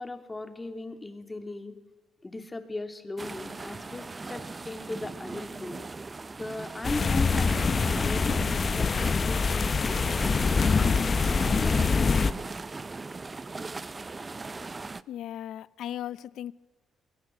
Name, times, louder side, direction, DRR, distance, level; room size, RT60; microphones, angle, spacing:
voice 1, 0.0-1.8 2.2-5.8 6.4-10.5, left 2 dB, 20° left, 2.6 m, -38 dB
sound 1, 3.2-15.0, right 3 dB, 25° right, 0.7 m, -38 dB
sound 2, 6.8-12.3, left 5 dB, 35° left, 0.8 m, -25 dB
voice 2, 15.1-16.5, left 11 dB, 75° left, 0.7 m, -37 dB
22.0 x 17.0 x 9.7 m
cardioid pair, 90°, 0 cm